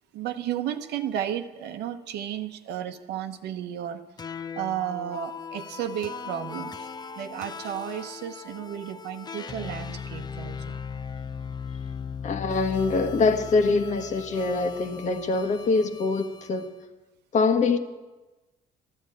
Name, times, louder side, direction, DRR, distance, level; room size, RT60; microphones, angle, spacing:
voice 1, 0.1-4.0 4.6-6.9 7.2-10.8, right 10 dB, 80° right, 5 dB, 0.9 m, -33 dB
sound 1, 4.2-16.7, left 6 dB, 25° left, 0.6 m, -38 dB
voice 2, 12.2-16.7 17.3-17.8, left 4 dB, 45° left, 8 dB, 1.4 m, -24 dB
13.5 x 10.5 x 8.6 m, 1.2 s
cardioid pair, 110°, 17 cm